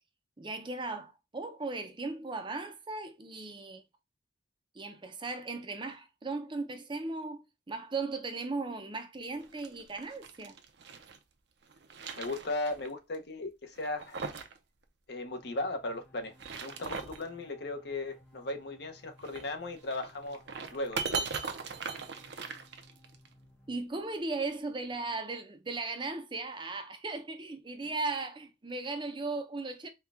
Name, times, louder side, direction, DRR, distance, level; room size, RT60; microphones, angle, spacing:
voice 1, 0.4-3.8 4.7-10.6 23.7-29.9, right 3 dB, 25° right, 0.6 m, -37 dB
sound 1, 9.4-11.2 11.6-12.9 13.1-13.2 13.7-14.6 14.8-14.9 16.2-17.3 19.2-23.3, right 5 dB, 65° right, 0.7 m, -39 dB
voice 2, 12.2-14.2 15.1-16.3 16.6-20.4 20.7-21.3, left 2 dB, 60° left, 0.9 m, -37 dB
sound 2, 15.2-23.8, left 1 dB, 10° left, 0.7 m, -60 dB
4.3 x 2.3 x 3.5 m
head